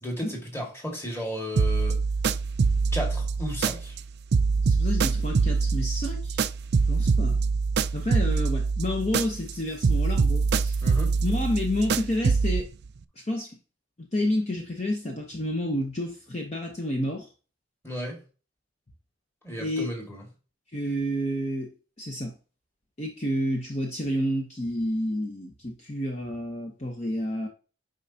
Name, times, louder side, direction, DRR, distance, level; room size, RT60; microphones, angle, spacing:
voice 1, 0.0-2.0 2.9-4.0 10.8-11.1 17.8-18.2 19.4-20.2, equal, 15° left, 1.9 m, -34 dB
sound 1, 1.6-4.0 4.3-9.5 9.8-12.6, right 4 dB, 55° right, 0.4 m, -24 dB
voice 2, 4.6-6.5 6.9-7.4 7.9-10.8 11.2-12.7 13.2-13.6 14.0-17.3 19.6-19.9 20.7-21.7 22.0-22.3 23.0-27.5, left 1 dB, 35° left, 0.9 m, -30 dB
9.1 x 5.1 x 2.8 m
head